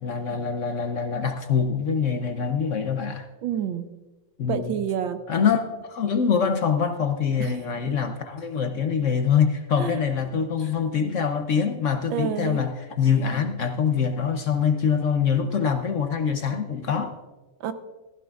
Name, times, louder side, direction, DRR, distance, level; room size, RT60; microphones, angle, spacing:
voice 1, 0.0-3.3 4.4-4.8 5.3-17.1, left 6 dB, 65° left, 7 dB, 0.8 m, -24 dB
voice 2, 3.4-3.9 4.5-5.2 7.4-7.5 7.9-8.0 9.8-10.0 12.1-12.6 17.6-17.7, right 8 dB, 85° right, 10 dB, 1.5 m, -28 dB
15.5 x 14.5 x 2.4 m, 1.2 s
omnidirectional pair, 2.1 m